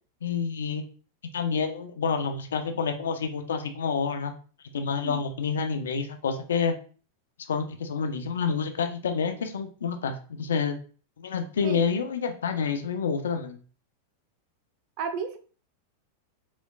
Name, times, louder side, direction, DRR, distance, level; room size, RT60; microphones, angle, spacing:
voice 1, 0.2-0.8 1.3-4.3 4.7-6.7 7.5-10.8 11.2-13.6, left 6 dB, 85° left, 7 dB, 0.5 m, -28 dB
voice 2, 15.0-15.4, right 6 dB, 55° right, 7 dB, 0.7 m, -32 dB
4.0 x 3.1 x 2.3 m, 0.39 s
hypercardioid pair, 105°, 0 cm